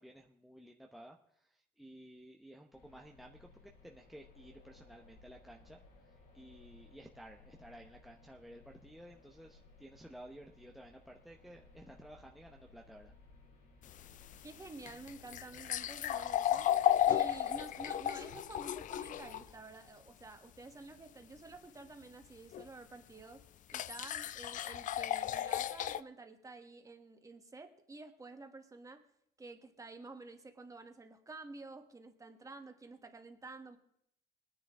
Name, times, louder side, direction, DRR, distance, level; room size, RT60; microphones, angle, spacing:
voice 1, 0.0-13.1, equal, ahead, 0 dB, 0.8 m, -54 dB
sound 1, 2.7-19.5, left 3 dB, 90° left, 5.7 m, -61 dB
sound 2, 13.8-19.4 22.5-22.6 23.7-26.0, left 11 dB, 50° left, 0.4 m, -34 dB
voice 2, 14.4-16.7 17.1-23.4 23.7-29.0 29.4-33.8, right 3 dB, 20° right, 6 dB, 1.5 m, -50 dB
20.0 x 10.0 x 3.6 m, 0.72 s
cardioid pair, 110°, 17 cm